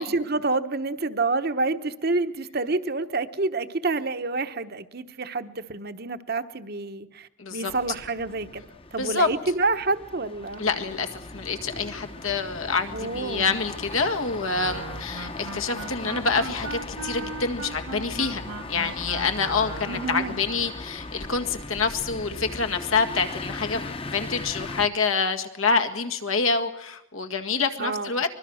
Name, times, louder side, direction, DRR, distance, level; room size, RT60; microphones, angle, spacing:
voice 1, 0.0-8.6 8.9-10.7 12.9-13.6 19.9-20.4 27.8-28.1, right 3 dB, 50° right, 10 dB, 1.1 m, -28 dB
voice 2, 7.4-7.7 9.0-9.3 10.6-18.4 18.7-28.3, left 4 dB, 85° left, 5 dB, 2.0 m, -27 dB
sound 1, 7.7-24.9, left 2 dB, 25° left, 0.9 m, -38 dB
Wind instrument woodwind instrument, 14.5-20.3, right 3 dB, 80° right, 0.9 m, -38 dB
24.5 x 21.5 x 6.4 m, 0.84 s
head